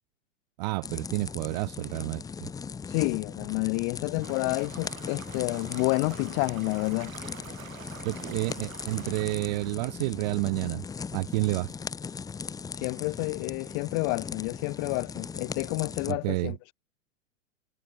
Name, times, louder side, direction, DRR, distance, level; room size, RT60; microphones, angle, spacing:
voice 1, 0.6-2.5 8.0-10.8 11.1-11.7 16.1-16.5, right 24 dB, 35° right, 0.4 m, -30 dB
sound 1, 0.8-16.1, left 5 dB, 10° left, 0.7 m, -39 dB
voice 2, 2.9-7.1 12.8-16.6, left 40 dB or more, 40° left, 1.5 m, -29 dB
sound 2, 4.2-9.7, right 8 dB, 90° right, 1.4 m, -46 dB
hypercardioid pair, 120°, 40 cm